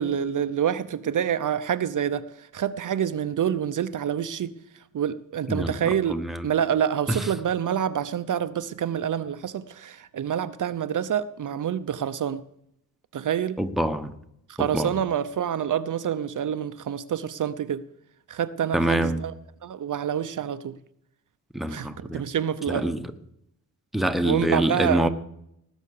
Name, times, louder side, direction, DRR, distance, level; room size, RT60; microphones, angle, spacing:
voice 1, 0.0-4.5 4.9-6.2 6.4-12.4 13.1-13.6 14.5-17.8 18.3-19.3 19.6-20.8 21.7-22.9 24.2-25.1, right 9 dB, 60° right, 0.7 m, -27 dB
voice 2, 6.1-6.5 7.1-7.2 13.6-14.1 14.6-14.9 18.7-19.2 21.5-22.2 22.7-23.0 23.9-25.1, right 1 dB, ahead, 1.0 m, -25 dB
19.0 x 8.0 x 6.6 m
wide cardioid pair, 115°, 36 cm